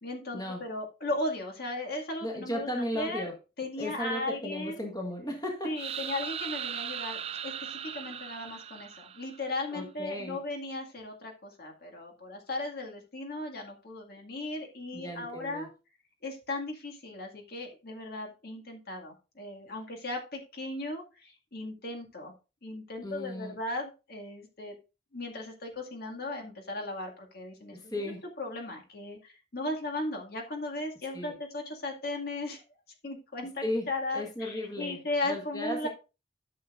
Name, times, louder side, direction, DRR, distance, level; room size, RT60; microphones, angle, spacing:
voice 1, 0.0-2.7 2.9-3.3 3.6-4.9 5.6-15.7 16.2-22.3 22.6-24.8 25.1-27.9 28.4-32.6 33.0-35.9, left 2 dB, 60° left, 2 dB, 2.1 m, -36 dB
voice 2, 2.2-3.3 3.8-6.1 9.7-10.4 14.9-15.7 23.0-23.5 27.7-28.2 31.1-31.4 33.6-33.9 34.1-35.9, left 1 dB, 20° left, 1 dB, 1.7 m, -35 dB
sound 1, 5.8-9.6, right 9 dB, 35° right, 0.3 m, -38 dB
13.0 x 6.7 x 2.5 m, 0.30 s
head